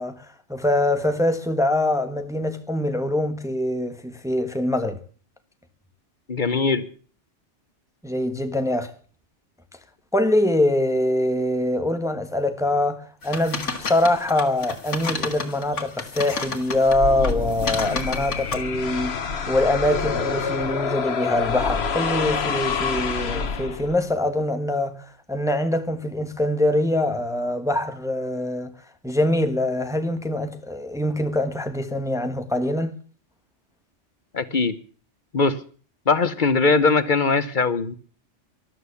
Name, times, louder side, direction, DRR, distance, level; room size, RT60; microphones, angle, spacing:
voice 1, 0.0-5.0 8.0-8.9 10.1-19.2 19.5-28.7 29.0-33.0, left 1 dB, 5° right, 1.0 m, -24 dB
voice 2, 6.3-6.8 34.3-34.7 35.3-35.5 36.1-37.9, left 4 dB, 45° left, 1.1 m, -20 dB
sound 1, 13.2-16.9 17.2-18.6, left 4 dB, 80° left, 2.1 m, -31 dB
sound 2, 16.9-24.1, left 5 dB, 60° left, 1.3 m, -27 dB
13.0 x 12.0 x 7.0 m
omnidirectional pair, 1.2 m